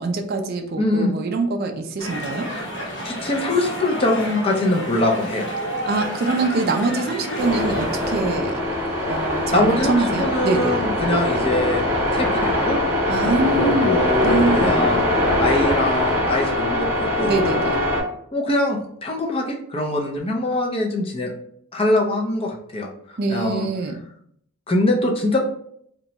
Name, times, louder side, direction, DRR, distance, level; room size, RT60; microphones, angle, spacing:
voice 1, 0.0-2.5 5.9-8.6 9.1-10.8 13.1-14.9 17.3-17.8 23.2-24.0, right 3 dB, 45° right, 4 dB, 0.3 m, -24 dB
voice 2, 0.8-1.1 3.0-5.5 9.5-11.8 12.1-12.8 13.5-15.0 15.4-17.3 18.3-21.3 21.7-22.9 23.3-23.7 24.7-25.4, left 2 dB, 25° left, 0 dB, 0.4 m, -22 dB
sound 1, 2.0-8.2, equal, 50° left, 0.9 m, -30 dB
sound 2, 7.4-18.0, left 1 dB, 10° right, 0.8 m, -22 dB
2.9 x 2.2 x 3.9 m, 0.69 s
head